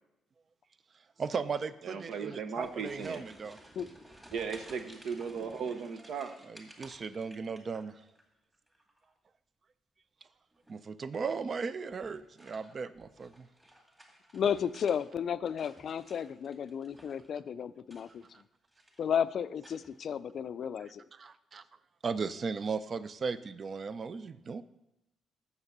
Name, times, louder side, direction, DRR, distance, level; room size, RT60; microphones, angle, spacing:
voice 1, 1.2-3.6 6.5-7.9 10.7-13.5 21.2-21.6 22.0-24.6, right 5 dB, 45° right, 14 dB, 0.5 m, -36 dB
voice 2, 1.8-3.2 4.3-6.3, right 6 dB, 75° right, 8 dB, 1.0 m, -37 dB
sound 1, 2.3-8.2 8.5-9.1 10.5-10.9 11.9-15.0 15.3-17.3 17.8-18.4 18.7-19.1 19.6-20.1, right 1 dB, 15° right, 2.2 m, -56 dB
voice 3, 14.3-18.3 19.0-21.0, left 8 dB, 60° left, 15 dB, 0.4 m, -33 dB
7.2 x 6.7 x 6.6 m, 0.89 s
cardioid pair, 90°, 0 cm